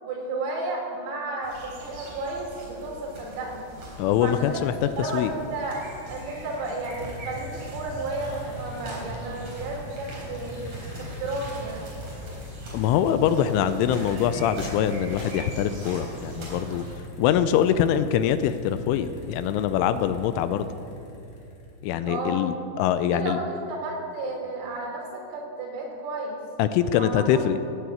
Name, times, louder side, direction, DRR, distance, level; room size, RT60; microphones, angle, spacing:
voice 1, 0.0-3.7 4.2-4.6 5.0-5.8 6.1-10.6 11.0-11.9 22.1-22.5 23.1-26.4 26.9-27.4, right 2 dB, 80° right, -2 dB, 5.9 m, -32 dB
sound 1, 1.4-16.9, equal, 35° right, 4.3 m, -41 dB
voice 2, 4.0-4.7 5.0-5.3 12.7-16.8 17.2-20.7 21.8-23.4 26.6-27.6, left 9 dB, 85° left, 11 dB, 2.9 m, -23 dB
sound 2, 6.2-22.1, left 1 dB, 45° left, 3.1 m, -41 dB
17.0 x 9.2 x 8.5 m, 2.6 s
omnidirectional pair, 5.9 m